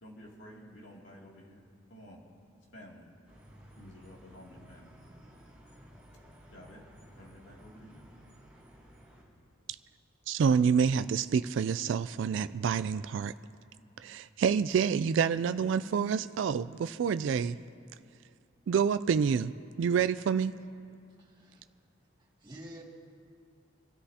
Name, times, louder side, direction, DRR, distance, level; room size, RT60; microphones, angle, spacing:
voice 1, 0.0-2.2 2.7-3.1 3.8-5.0 6.5-6.8 7.2-8.0, equal, 65° left, -3 dB, 2.6 m, -51 dB
sound 1, 3.3-9.2, equal, 10° right, 3.7 m, -55 dB
voice 2, 10.3-13.3 14.0-17.6 18.7-19.5 19.8-20.5, right 6 dB, 70° right, 12 dB, 0.3 m, -27 dB
voice 3, 21.2-21.7 22.2-22.8, right 1 dB, 25° right, -4 dB, 2.3 m, -49 dB
26.5 x 13.0 x 2.8 m, 2.4 s
head